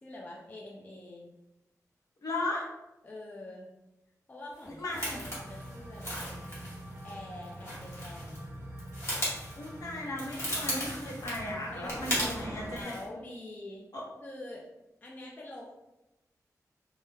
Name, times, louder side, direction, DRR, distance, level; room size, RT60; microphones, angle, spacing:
voice 1, 0.0-1.3 3.0-3.7 4.3-6.5 7.0-8.5 11.7-13.9 14.2-14.7 15.0-15.7, left 1 dB, 25° left, -3 dB, 0.3 m, -45 dB
voice 2, 2.2-2.7 4.8-5.2 9.5-12.9 13.9-14.0, left 2 dB, 65° left, -3 dB, 0.8 m, -36 dB
sound 1, 4.6-8.4 8.7-12.4 12.7-13.0, equal, 45° left, 1.1 m, -37 dB
sound 2, 4.9-12.8, right 1 dB, 40° right, 0.5 m, -44 dB
2.2 x 2.1 x 3.3 m, 0.94 s
wide cardioid pair, 125°, 6 cm